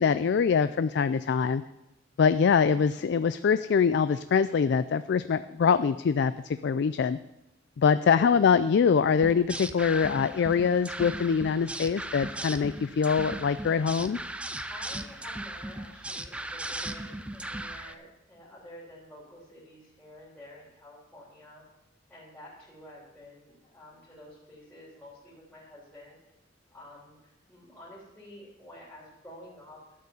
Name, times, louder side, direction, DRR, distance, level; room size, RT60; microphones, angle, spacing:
voice 1, 0.0-1.6 2.2-7.2 7.8-14.2, left 6 dB, 60° left, 13 dB, 0.3 m, -24 dB
sound 1, 9.2-17.9, right 1 dB, 5° right, 0.5 m, -37 dB
voice 2, 14.7-21.7 22.1-26.2 26.7-29.8, left 1 dB, 10° left, -9 dB, 3.2 m, -50 dB
12.0 x 6.6 x 7.0 m, 0.92 s
head